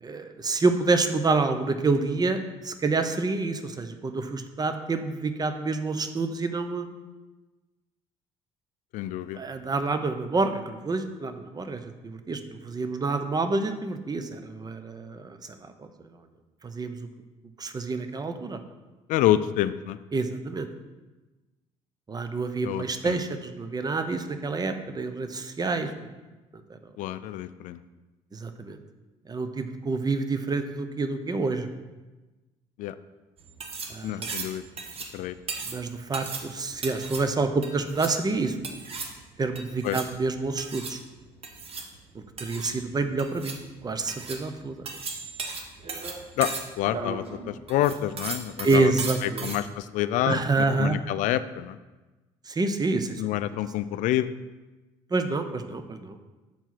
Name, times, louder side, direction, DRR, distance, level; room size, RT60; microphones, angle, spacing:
voice 1, 0.0-7.0 9.4-15.9 16.6-17.1 17.6-18.6 20.1-20.7 22.1-25.9 26.7-26.8 28.3-28.8 29.3-31.7 33.9-34.3 35.7-38.6 39.4-41.0 42.1-43.6 43.8-44.9 48.6-49.5 50.2-51.0 52.5-53.2 55.1-56.2, right 3 dB, 30° right, 8 dB, 0.8 m, -28 dB
voice 2, 8.9-9.4 19.1-20.0 22.6-23.2 27.0-27.8 32.8-33.0 34.0-34.6 35.1-35.4 39.8-40.0 46.4-48.9 49.2-51.8 53.2-54.3, left 13 dB, 70° left, 14 dB, 0.4 m, -28 dB
sound 1, 33.4-49.6, right 4 dB, 45° right, 1.2 m, -37 dB
7.3 x 4.5 x 5.9 m, 1.2 s
supercardioid pair, 70°, 14 cm